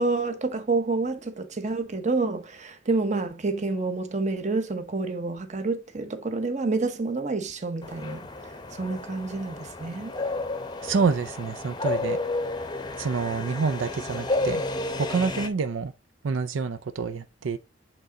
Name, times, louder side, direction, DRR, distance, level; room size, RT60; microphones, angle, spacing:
voice 1, 0.0-8.3 8.7-10.1, right 3 dB, 40° right, 0.9 m, -28 dB
sound 1, 7.8-15.5, left 2 dB, 20° left, 0.7 m, -31 dB
voice 2, 10.8-12.2 13.0-14.6 15.0-15.9 16.2-17.6, right 5 dB, 80° right, 0.5 m, -27 dB
8.0 x 3.7 x 3.9 m
head